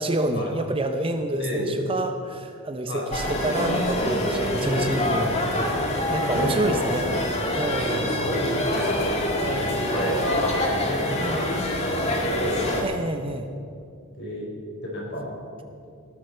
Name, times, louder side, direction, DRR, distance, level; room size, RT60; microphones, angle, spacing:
voice 1, 0.0-5.8 6.1-7.1 7.5-8.2 9.4-9.8 11.2-11.5 12.8-13.5, right 1 dB, 25° right, 6 dB, 0.7 m, -28 dB
voice 2, 1.4-1.8 2.9-3.1 4.6-5.0 6.1-6.2 6.7-7.2 7.9-9.5 9.8-10.5 10.8-11.3 11.7-12.7 14.0-14.5 14.8-15.3, left 1 dB, 55° left, -2 dB, 4.3 m, -31 dB
sound 1, 3.1-12.8, left 1 dB, 30° left, 1.8 m, -25 dB
18.0 x 12.5 x 4.5 m, 2.4 s
head